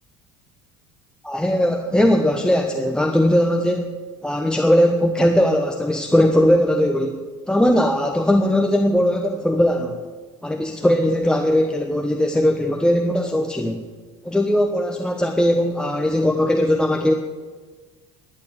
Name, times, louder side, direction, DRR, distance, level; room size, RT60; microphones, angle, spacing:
voice 1, 1.2-3.9 4.2-7.2 7.5-10.0 10.4-13.8 14.2-17.1, equal, 5° left, 3 dB, 1.1 m, -19 dB
12.0 x 8.7 x 8.3 m, 1.4 s
hypercardioid pair, 80°, 16 cm